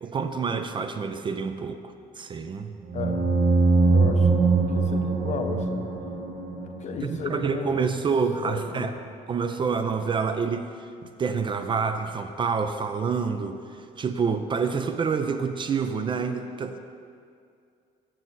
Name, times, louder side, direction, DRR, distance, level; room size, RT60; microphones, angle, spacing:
voice 1, 0.0-2.7 7.0-8.9 9.3-10.7 11.2-16.8, right 5 dB, 30° right, 8 dB, 0.4 m, -27 dB
voice 2, 2.9-3.4 3.9-5.9 6.8-7.8 8.4-8.9, left 6 dB, 45° left, 7 dB, 0.6 m, -34 dB
sound 1, 2.9-7.4, right 3 dB, 50° right, 0.8 m, -23 dB
7.6 x 6.2 x 4.0 m, 2.3 s
cardioid pair, 110°, 17 cm